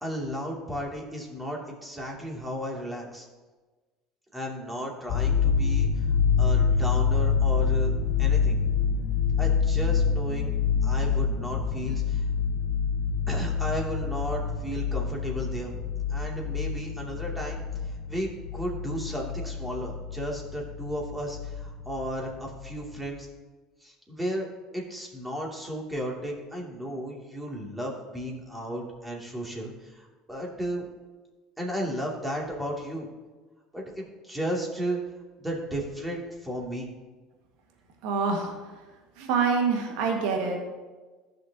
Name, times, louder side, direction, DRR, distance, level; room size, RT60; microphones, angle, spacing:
voice 1, 0.0-3.2 4.3-5.9 6.4-7.9 8.2-8.6 9.4-10.5 10.8-12.2 13.3-15.7 16.1-17.6 18.1-23.3 23.8-24.5 24.7-30.9 31.6-33.1 33.7-35.0 35.4-36.9, equal, 10° right, -2 dB, 2.7 m, -34 dB
sound 1, 5.1-22.1 22.4-22.8, left 6 dB, 65° left, 1.3 m, -26 dB
voice 2, 38.0-38.7 39.2-40.6, right 5 dB, 65° right, 2 dB, 1.8 m, -26 dB
14.5 x 6.4 x 2.9 m, 1.3 s
hypercardioid pair, 70°, 0 cm